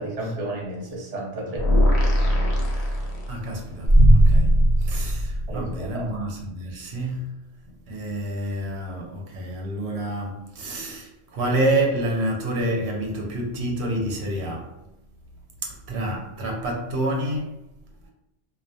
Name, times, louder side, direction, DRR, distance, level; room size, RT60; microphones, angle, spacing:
voice 1, 0.0-1.7 5.5-6.1, right 2 dB, 40° right, 0.7 m, -32 dB
sound 1, 1.6-3.7, left 1 dB, 90° left, 0.9 m, -21 dB
voice 2, 2.7-7.4 7.9-14.7 15.6-17.5, right 1 dB, 90° right, 0.9 m, -28 dB
sound 2, 3.9-6.1, right 1 dB, 45° left, 0.5 m, -17 dB
2.4 x 2.1 x 2.6 m
omnidirectional pair, 1.1 m